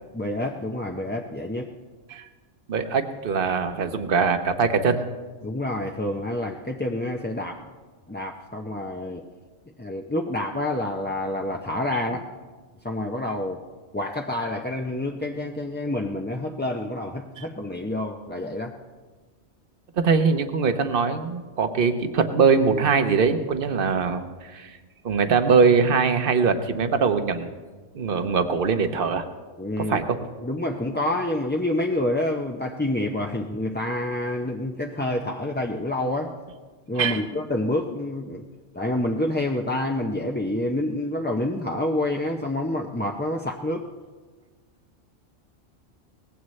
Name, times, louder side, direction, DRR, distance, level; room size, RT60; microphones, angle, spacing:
voice 1, 0.1-1.7 5.4-7.7 8.1-9.2 9.8-12.3 12.8-13.6 13.9-18.8 29.6-36.3 36.9-38.4 38.7-43.9, left 1 dB, 15° left, 0 dB, 0.5 m, -28 dB
voice 2, 2.7-5.0 17.4-17.5 20.0-24.8 25.0-27.5 27.9-29.2 29.8-30.2 37.0-37.2, right 5 dB, 50° right, 8 dB, 1.1 m, -22 dB
23.0 x 18.5 x 3.2 m, 1.4 s
omnidirectional pair, 1.2 m